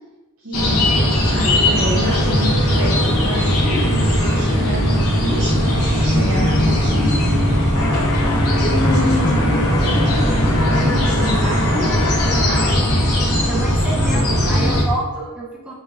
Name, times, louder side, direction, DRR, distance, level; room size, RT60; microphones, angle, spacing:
voice 1, 0.4-7.3 8.8-12.7, left 1 dB, 75° right, -7 dB, 0.8 m, -28 dB
sound 1, 0.5-14.8, equal, 85° left, 1.0 m, -18 dB
sound 2, 7.7-12.7, left 3 dB, 60° left, 0.5 m, -28 dB
voice 2, 13.5-15.7, right 2 dB, 5° right, -4 dB, 0.5 m, -28 dB
4.0 x 3.4 x 2.4 m, 1.1 s
head